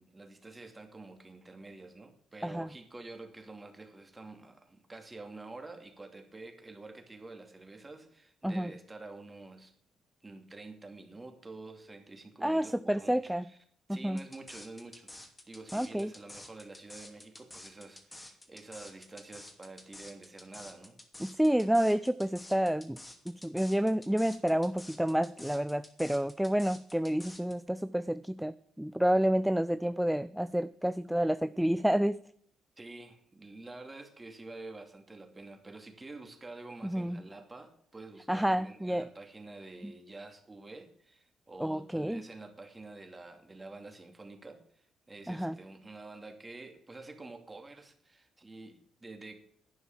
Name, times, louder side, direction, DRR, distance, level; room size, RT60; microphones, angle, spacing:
voice 1, 0.0-9.7 10.2-13.6 13.9-21.0 32.8-49.4, right 2 dB, 20° right, 5 dB, 2.6 m, -48 dB
voice 2, 12.4-13.4 13.9-14.2 15.7-16.1 21.2-23.0 23.3-32.2 36.8-37.2 38.3-39.1 39.8-39.9 41.6-42.2 45.3-45.6, equal, 5° right, 14 dB, 0.4 m, -29 dB
sound 1, 14.2-27.5, left 1 dB, 15° left, 2.6 m, -50 dB
11.5 x 9.5 x 7.4 m, 0.64 s
cardioid pair, 90°, 0 cm